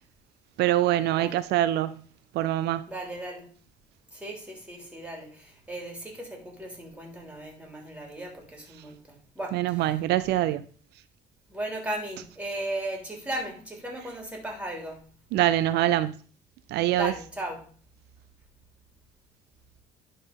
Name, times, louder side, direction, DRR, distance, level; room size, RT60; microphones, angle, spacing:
voice 1, 0.6-1.9 2.3-2.8 9.5-10.6 15.3-16.1 16.7-17.1, right 14 dB, 80° right, 0.5 m, -24 dB
voice 2, 1.1-1.5 2.9-3.5 4.1-10.0 10.4-10.5 11.5-15.0 16.9-17.7, right 1 dB, 10° right, 3.3 m, -36 dB
11.0 x 4.3 x 5.3 m
cardioid pair, 110°, 17 cm